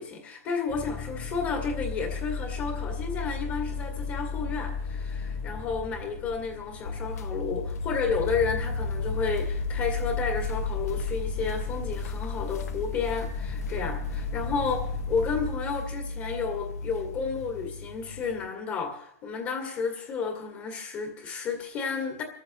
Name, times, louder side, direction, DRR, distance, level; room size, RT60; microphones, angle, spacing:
voice 1, 0.0-22.2, left 5 dB, 30° left, 2.3 m, -32 dB
sound 1, 0.7-15.5, left 5 dB, 60° left, 5.3 m, -35 dB
sound 2, 6.9-18.4, left 3 dB, 85° left, 0.9 m, -35 dB
27.0 x 14.5 x 3.1 m
supercardioid pair, 155°, 8 cm